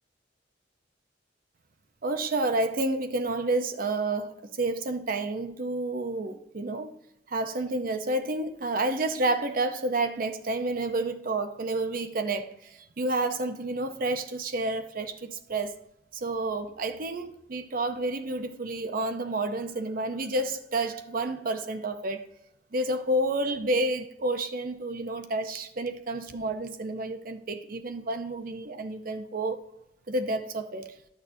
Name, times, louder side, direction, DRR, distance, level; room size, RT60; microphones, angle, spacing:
voice 1, 2.0-6.9 7.3-15.8 16.1-22.3 22.7-29.6 30.1-30.9, right 2 dB, 50° right, 0.7 m, -30 dB
11.0 x 6.4 x 2.7 m
head